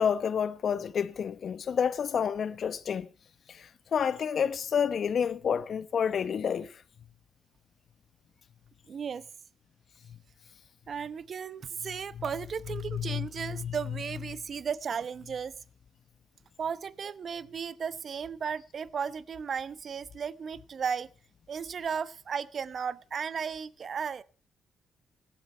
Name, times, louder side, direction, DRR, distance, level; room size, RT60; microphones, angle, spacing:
voice 1, 0.0-3.1 3.6-6.7 12.9-13.7, left 7 dB, 60° left, 1.0 m, -29 dB
voice 2, 8.9-9.2 10.9-15.6 16.6-21.1 21.5-24.2, right 6 dB, 55° right, 0.8 m, -35 dB
17.0 x 12.0 x 4.4 m
cardioid pair, 75°, 0 cm